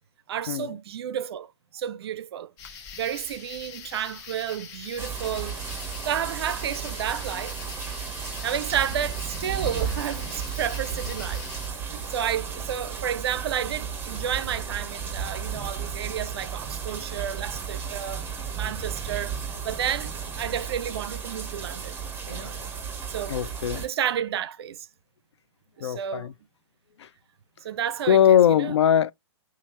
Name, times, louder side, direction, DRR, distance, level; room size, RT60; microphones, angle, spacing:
voice 1, 0.3-2.5 3.0-5.6 6.0-7.6 8.4-11.4 11.9-18.3 18.6-22.0 22.3-22.5 23.1-23.4 23.7-24.9 25.8-26.3 27.6-28.8, right 9 dB, 60° right, 0.5 m, -31 dB
sound 1, 2.6-11.7, left 6 dB, 40° left, 1.0 m, -43 dB
sound 2, 5.0-23.9, right 6 dB, 15° right, 0.9 m, -34 dB
voice 2, 23.3-23.8 25.8-26.3 27.0-27.1 28.1-29.1, left 10 dB, 70° left, 0.4 m, -21 dB
2.9 x 2.4 x 4.2 m
figure-of-eight pair, 115°, 15 cm